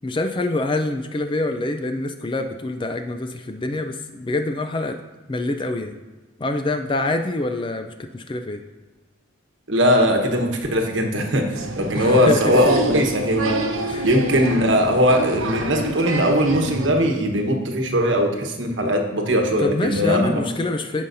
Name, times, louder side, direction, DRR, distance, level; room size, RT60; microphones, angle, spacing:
voice 1, 0.0-5.0 5.3-5.9 6.4-8.6 11.9-12.8 13.9-14.1 19.6-21.0, left 2 dB, 25° left, 7 dB, 0.4 m, -25 dB
voice 2, 9.7-13.6 14.0-20.4, equal, 60° right, 3 dB, 1.2 m, -20 dB
Applause, 11.5-16.9, right 2 dB, 80° right, 0.9 m, -28 dB
15.5 x 5.5 x 2.7 m, 1.2 s
head